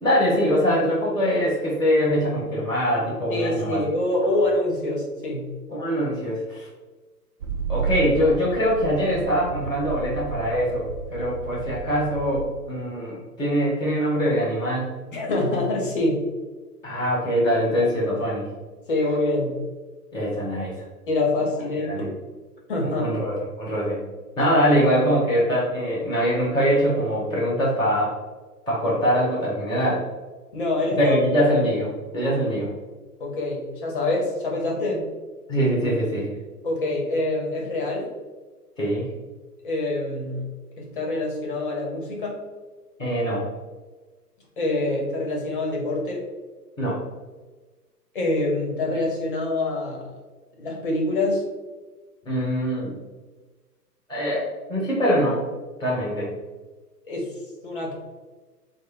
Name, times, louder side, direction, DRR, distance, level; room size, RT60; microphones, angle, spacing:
voice 1, 0.0-3.8 5.7-6.7 7.7-14.9 16.8-18.5 20.1-20.7 21.8-22.1 22.8-24.0 24.4-28.1 28.7-30.0 31.0-32.7 35.5-36.3 38.8-39.1 43.0-43.4 46.8-47.0 52.2-53.0 54.1-55.4 55.8-56.3, equal, 5° right, -21 dB, 0.5 m, -23 dB
voice 2, 3.3-5.5 15.1-16.2 18.9-19.6 21.1-22.2 22.7-23.1 30.5-31.2 33.2-35.0 36.6-38.1 39.6-40.5 40.8-42.4 44.6-46.2 48.1-50.1 50.6-51.4 57.1-57.3 57.6-57.9, left 2 dB, 35° left, -1 dB, 0.7 m, -25 dB
sound 1, 7.4-12.5, right 5 dB, 60° right, 0.6 m, -32 dB
3.7 x 2.1 x 3.7 m, 1.3 s
hypercardioid pair, 150°, 48 cm